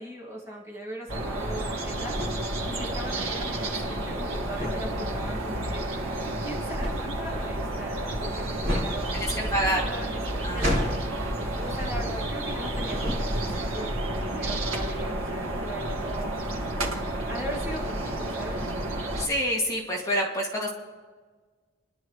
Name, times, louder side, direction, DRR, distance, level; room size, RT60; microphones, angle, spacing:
voice 1, 0.0-2.2 2.6-6.0 6.4-9.4 9.7-10.8 11.6-16.4 17.1-18.7, right 1 dB, 15° right, -5 dB, 2.1 m, -39 dB
sound 1, 1.1-19.3, right 1 dB, 90° right, 1.9 m, -31 dB
sound 2, 1.4-12.6 12.8-13.7, left 1 dB, 45° right, 5.1 m, -32 dB
voice 2, 9.1-9.8 10.4-10.9 19.2-20.7, equal, 15° left, -3 dB, 2.3 m, -27 dB
28.0 x 11.5 x 3.2 m, 1.4 s
head